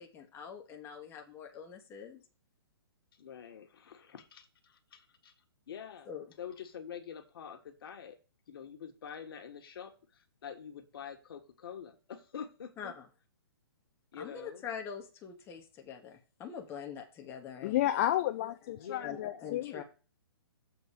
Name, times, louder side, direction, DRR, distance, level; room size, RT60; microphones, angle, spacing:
voice 1, 0.0-2.2 6.1-6.2 12.8-13.1 14.2-17.9 19.0-19.8, left 7 dB, 20° left, 1.2 m, -44 dB
voice 2, 3.2-5.3 5.7-6.1 6.4-8.2 8.5-12.9 14.1-14.6 18.7-19.4, left 8 dB, 65° left, 1.5 m, -46 dB
voice 3, 17.6-19.8, left 13 dB, 35° left, 0.5 m, -31 dB
7.2 x 3.9 x 6.6 m
hypercardioid pair, 150°, 13 cm